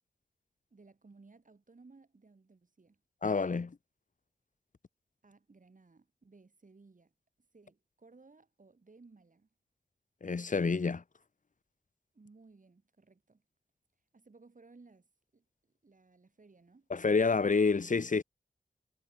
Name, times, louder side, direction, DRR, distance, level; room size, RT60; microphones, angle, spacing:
voice 1, 0.7-3.0 5.2-7.1 7.5-9.5 12.1-13.4 14.1-16.9, right 3 dB, 50° right, 7.5 m, -60 dB
voice 2, 3.2-3.8 10.2-11.0 16.9-18.2, left 4 dB, 50° left, 1.3 m, -28 dB
cardioid pair, 50°, 17 cm